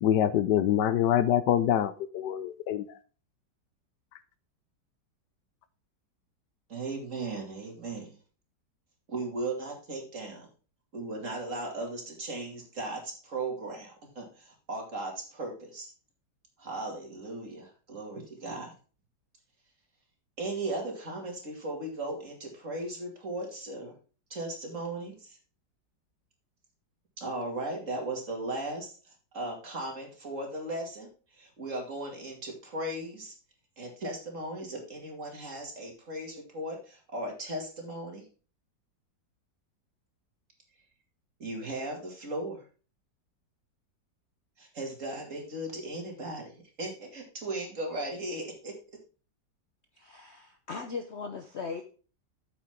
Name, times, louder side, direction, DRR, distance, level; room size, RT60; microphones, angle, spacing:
voice 1, 0.0-2.9, left 10 dB, 75° left, 13 dB, 1.3 m, -25 dB
voice 2, 6.7-8.1 9.1-10.5 10.9-15.9 16.6-18.7 20.4-23.9 24.3-25.4 27.2-28.9 29.3-31.1 31.4-33.3 33.8-38.2 41.4-42.6 44.6-46.5 46.8-48.7, right 2 dB, 45° right, 1 dB, 2.7 m, -37 dB
voice 3, 50.0-51.9, left 5 dB, 50° left, 6 dB, 0.8 m, -39 dB
8.7 x 7.6 x 3.6 m, 0.36 s
omnidirectional pair, 1.9 m